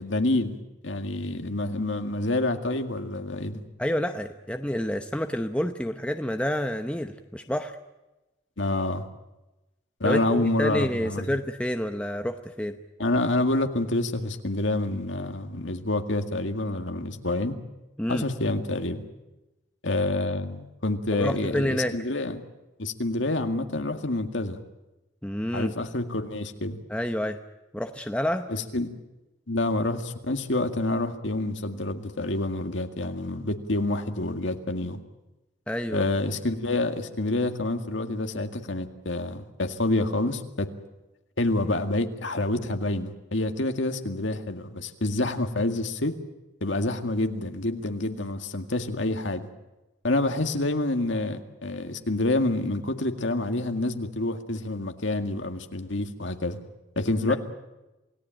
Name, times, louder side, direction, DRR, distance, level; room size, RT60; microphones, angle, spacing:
voice 1, 0.0-3.6 8.6-9.1 10.0-11.3 13.0-17.6 18.1-19.0 19.8-22.4 22.8-24.6 25.5-26.8 28.5-28.9 29.5-35.0 35.9-40.7 41.4-46.1 46.6-49.5 50.0-56.6 57.0-57.4, left 2 dB, 80° left, 6 dB, 2.0 m, -27 dB
voice 2, 3.8-7.8 10.0-12.8 18.0-18.2 21.1-21.9 25.2-25.7 26.9-27.4 27.7-28.5 35.7-36.0 57.3-57.4, equal, 5° left, 6 dB, 0.8 m, -28 dB
28.0 x 18.0 x 9.0 m, 1.0 s
head